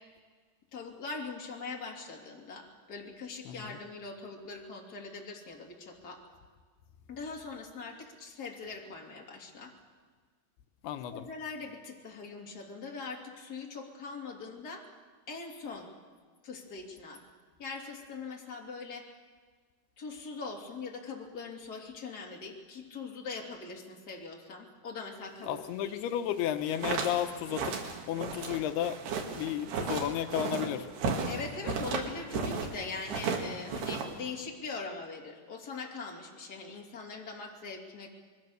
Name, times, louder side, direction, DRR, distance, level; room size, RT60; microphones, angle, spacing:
voice 1, 0.7-6.2 7.1-9.7 11.1-14.9 15.3-15.9 16.4-17.2 17.6-19.1 20.0-25.9 31.3-38.1, left 4 dB, 25° left, -1 dB, 3.0 m, -42 dB
voice 2, 3.5-3.8 10.8-11.3 25.5-27.8 28.1-29.0 29.3-30.9, left 11 dB, 85° left, 9 dB, 2.8 m, -33 dB
sound 1, 26.5-32.7 33.0-34.3, right 5 dB, 85° right, 4.2 m, -34 dB
27.0 x 21.5 x 6.7 m, 1.5 s
omnidirectional pair, 4.5 m